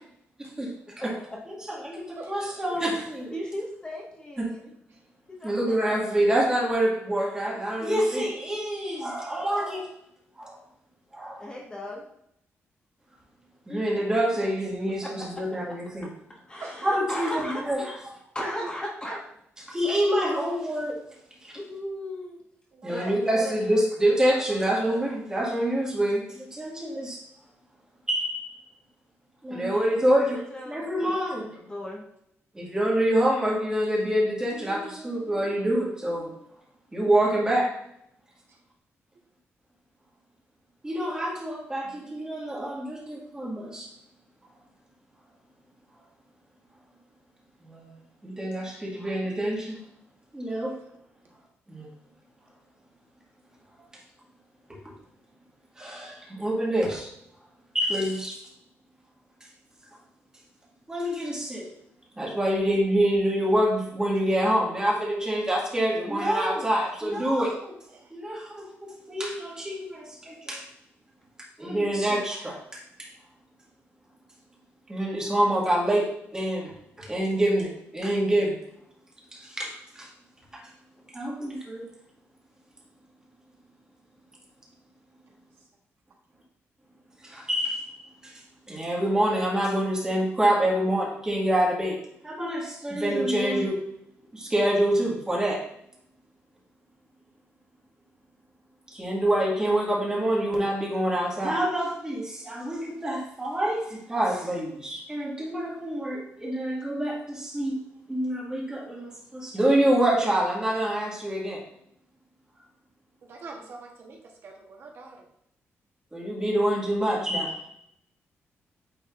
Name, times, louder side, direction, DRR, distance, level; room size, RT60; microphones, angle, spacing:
voice 1, 0.4-1.1 1.5-3.3 4.4-4.5 5.4-9.8 10.4-10.6 11.1-11.5 13.7-16.1 16.8-18.2 19.7-21.0 21.4-21.6 22.8-27.2 28.1-28.5 29.4-31.5 32.5-36.3 36.9-37.7 40.8-43.9 47.6-47.9 48.2-49.8 50.3-50.7 51.7-51.8 55.8-57.1 57.7-58.4 60.9-61.7 62.2-67.7 68.1-70.7 71.6-73.1 74.9-76.1 76.3-78.5 79.3-79.7 80.0-80.1 81.1-81.9 87.2-87.9 88.2-88.3 88.7-92.0 92.2-93.8 94.3-95.6 98.9-107.7 108.1-111.6 116.1-117.7, right 1 dB, 15° right, -4 dB, 1.9 m, -26 dB
voice 2, 2.8-4.7 5.4-6.2 11.4-12.0 13.7-14.1 15.0-15.1 16.5-18.0 18.3-19.2 21.5-22.4 22.9-23.8 24.2-24.7 29.6-30.0 30.3-32.0, left 1 dB, 20° left, -3 dB, 1.5 m, -37 dB
voice 3, 22.7-23.2 67.9-68.1 113.2-114.2 114.4-115.2, right 3 dB, 60° right, 0 dB, 1.1 m, -43 dB
9.1 x 4.0 x 2.5 m, 0.74 s
cardioid pair, 130°, 5 cm